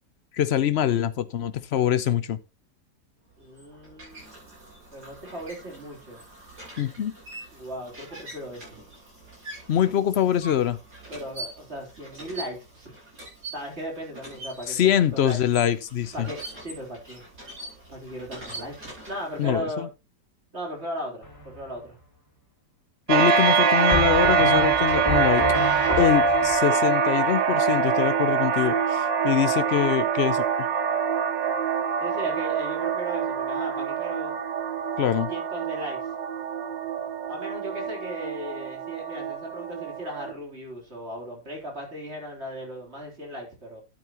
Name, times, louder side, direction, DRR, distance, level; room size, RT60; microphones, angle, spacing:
voice 1, 0.3-2.4 6.8-7.1 9.7-10.8 14.7-16.3 19.4-19.9 23.1-25.4 26.0-30.4 35.0-35.3, left 10 dB, 85° left, 0.5 m, -24 dB
sound 1, 3.3-19.5, right 2 dB, 65° right, 8.4 m, -44 dB
voice 2, 3.4-4.4 4.9-6.2 7.5-8.8 11.1-12.9 13.5-15.4 16.1-17.3 17.9-19.9 20.5-22.0 25.9-26.2 32.0-34.3 35.3-36.0 37.3-43.8, equal, 35° right, 3.9 m, -37 dB
sound 2, 21.2-21.8 23.9-26.5, equal, 10° left, 4.9 m, -30 dB
sound 3, 23.1-40.3, right 6 dB, 85° right, 1.8 m, -24 dB
12.0 x 9.2 x 3.0 m
omnidirectional pair, 1.9 m